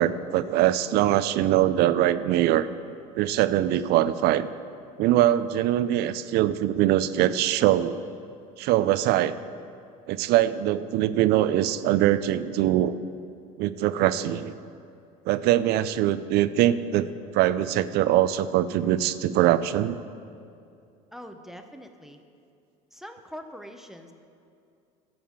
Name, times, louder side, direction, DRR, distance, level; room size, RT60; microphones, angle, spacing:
voice 1, 0.0-2.7 3.2-4.5 5.0-8.0 8.6-9.4 10.1-13.0 13.6-14.5 15.3-17.1 17.3-20.0, right 13 dB, 60° right, 14 dB, 0.5 m, -22 dB
voice 2, 21.1-22.2 22.9-24.1, equal, ahead, 6 dB, 0.8 m, -43 dB
11.0 x 5.5 x 7.3 m, 2.5 s
supercardioid pair, 90°, 18 cm